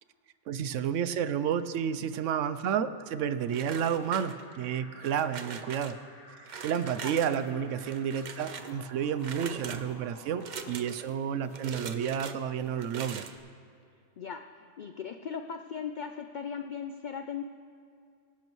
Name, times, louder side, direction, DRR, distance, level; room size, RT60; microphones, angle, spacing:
voice 1, 0.5-6.0 6.6-13.3, right 8 dB, 75° right, 13 dB, 0.9 m, -31 dB
Alarm, 3.5-11.4, left 1 dB, 30° left, 2.4 m, -54 dB
sound 1, 3.5-4.6 5.0-5.9 6.5-7.4 7.8-8.7 9.2-9.8 10.4-11.1 11.5-12.4 12.8-13.4, right 6 dB, 50° right, 0.6 m, -42 dB
sound 2, 6.5-6.6 7.4-7.7 8.6-9.0 9.7-10.1 10.6-12.8, left 3 dB, 65° left, 1.5 m, -54 dB
voice 2, 14.8-17.4, left 7 dB, 85° left, 7 dB, 0.4 m, -38 dB
20.0 x 11.5 x 3.1 m, 2.4 s
omnidirectional pair, 1.3 m